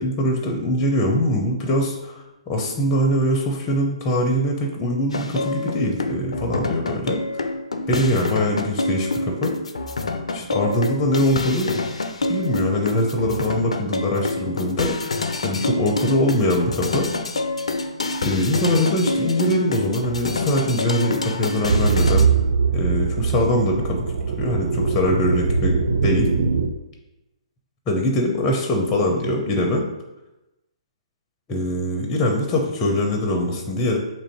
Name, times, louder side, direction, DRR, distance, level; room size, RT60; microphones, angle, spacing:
voice 1, 0.0-7.5 7.9-9.5 10.3-11.8 12.3-15.1 15.4-17.1 18.2-22.3 22.7-24.1 24.4-26.3 27.9-29.9 31.5-34.0, left 1 dB, 20° left, 2 dB, 0.6 m, -22 dB
sound 1, 5.1-22.2, left 2 dB, 80° left, 0.4 m, -27 dB
sound 2, 21.7-26.7, right 5 dB, 65° right, 0.4 m, -21 dB
3.0 x 2.5 x 4.4 m, 0.97 s
hypercardioid pair, 135°, 3 cm